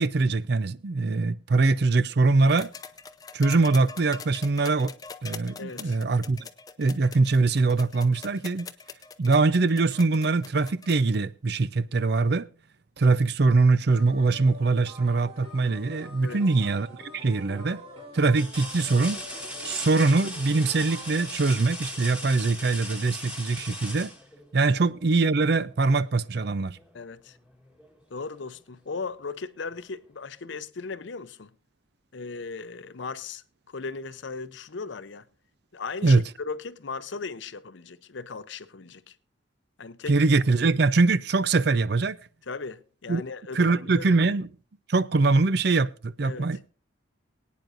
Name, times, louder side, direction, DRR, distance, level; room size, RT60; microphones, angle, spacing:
voice 1, 0.0-2.7 3.3-4.9 5.2-6.5 6.8-8.7 9.2-12.5 13.0-17.8 18.1-19.2 19.6-24.1 24.5-26.8 36.0-36.2 40.1-42.2 43.1-43.2 43.5-44.5 44.9-46.7, right 3 dB, 55° right, 0.5 m, -23 dB
sound 1, 2.5-11.2 12.4-12.5, left 5 dB, 20° left, 0.6 m, -43 dB
voice 2, 5.6-6.0 16.2-16.4 24.7-24.8 26.9-27.4 28.1-31.5 32.1-35.2 35.7-39.2 39.8-40.2 42.5-44.1 46.2-46.5, left 4 dB, 70° left, 0.7 m, -37 dB
sound 2, 13.9-21.3, equal, 30° right, 3.7 m, -46 dB
sound 3, 16.6-17.0 17.6-17.7 18.3-25.0 26.8-26.9 27.4-28.4 29.7-29.8, equal, 5° right, 2.1 m, -38 dB
22.5 x 9.3 x 2.5 m
head